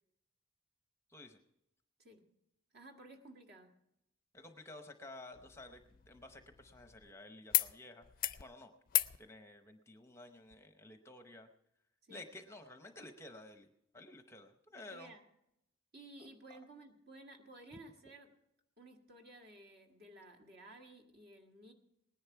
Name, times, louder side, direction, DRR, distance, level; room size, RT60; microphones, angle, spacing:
voice 1, 2.7-3.7 12.0-12.3 14.7-15.2 15.9-18.3 18.8-21.7, right 2 dB, 50° right, 3 dB, 1.8 m, -55 dB
voice 2, 4.3-8.0 8.4-8.7 9.2-11.5 12.1-13.7 13.9-15.1 16.5-16.6 17.7-17.8, left 2 dB, 15° left, 7 dB, 0.7 m, -53 dB
sound 1, 5.3-7.1 7.5-7.7 8.0-8.4 8.9-9.2 10.5-10.6, left 15 dB, 45° left, 0.4 m, -36 dB
19.0 x 10.5 x 4.6 m, 0.82 s
head